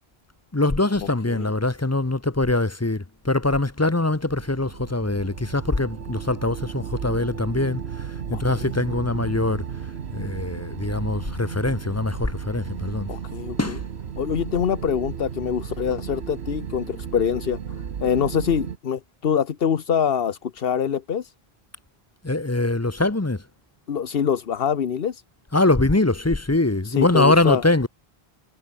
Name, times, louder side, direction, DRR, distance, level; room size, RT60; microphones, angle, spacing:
voice 1, 0.5-9.6 10.1-13.1 13.6-13.8 22.2-23.4 25.5-27.9, left 2 dB, 15° left, 0.9 m, -23 dB
sound 1, 4.2-18.8, right 7 dB, 85° right, 1.3 m, -34 dB
voice 2, 8.3-8.7 13.1-13.8 14.2-17.6 18.0-21.3 23.9-25.2 26.8-27.6, left 7 dB, 65° left, 1.2 m, -25 dB
omnidirectional pair, 1.1 m